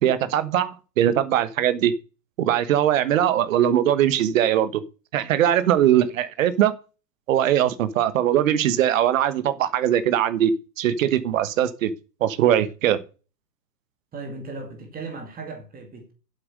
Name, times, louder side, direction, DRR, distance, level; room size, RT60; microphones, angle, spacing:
voice 1, 0.0-1.9 2.4-4.8 5.1-6.7 7.3-11.9 12.2-13.0, right 11 dB, 50° right, 1.4 m, -21 dB
voice 2, 14.1-16.1, right 3 dB, 15° right, 2.5 m, -36 dB
8.9 x 8.1 x 6.3 m
hypercardioid pair, 120°, 50 cm